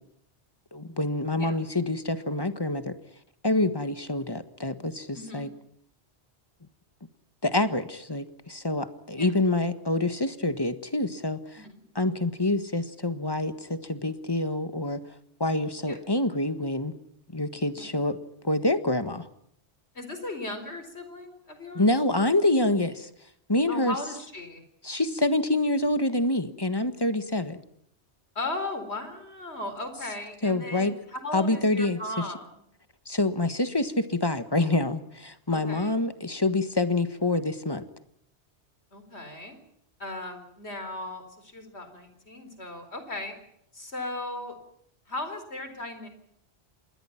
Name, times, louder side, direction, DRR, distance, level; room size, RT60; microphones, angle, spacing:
voice 1, 0.7-3.0 3.4-5.5 7.4-11.7 11.9-15.0 15.4-16.9 17.3-18.2 18.4-19.3 21.7-23.1 23.5-23.9 24.8-27.6 30.4-31.0 31.3-32.3 33.0-37.9, left 2 dB, 20° left, 10 dB, 1.5 m, -26 dB
voice 2, 5.1-5.5 9.2-9.3 11.6-11.8 15.8-16.0 17.7-17.9 19.9-21.8 23.7-24.6 28.3-32.6 35.5-36.0 38.9-39.6 40.0-43.3 43.7-44.6 45.1-46.1, left 2 dB, 70° left, 8 dB, 4.6 m, -37 dB
27.5 x 21.0 x 5.9 m, 0.71 s
omnidirectional pair, 1.2 m